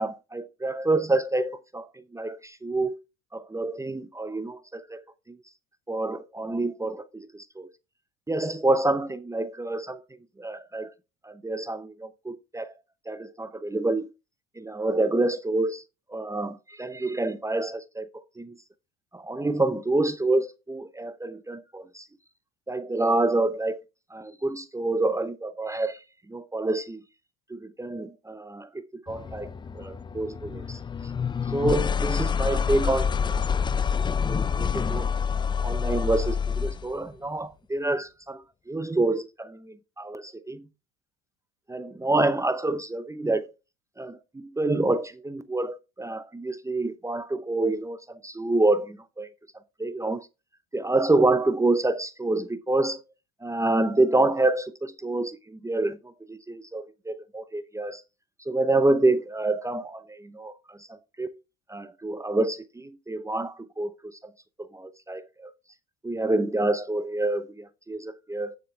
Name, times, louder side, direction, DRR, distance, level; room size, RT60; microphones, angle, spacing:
voice 1, 0.0-1.9 2.1-2.9 3.3-5.0 5.3-5.4 5.9-7.7 8.3-10.0 10.4-10.9 11.2-12.7 13.1-14.1 14.6-15.8 16.1-18.1 18.4-18.5 19.1-22.1 22.7-23.8 24.1-26.0 26.3-27.0 27.5-30.8 31.5-33.5 34.2-35.1 35.6-40.7 41.7-43.5 44.0-49.3 49.8-50.3 50.7-53.0 53.4-58.0 58.5-61.3 61.7-64.2 64.6-65.5 66.0-68.6, right 2 dB, 10° right, 0.7 m, -27 dB
sound 1, 29.1-36.9, left 6 dB, 15° left, 0.4 m, -27 dB
9.3 x 7.3 x 3.3 m
supercardioid pair, 100°, 30 cm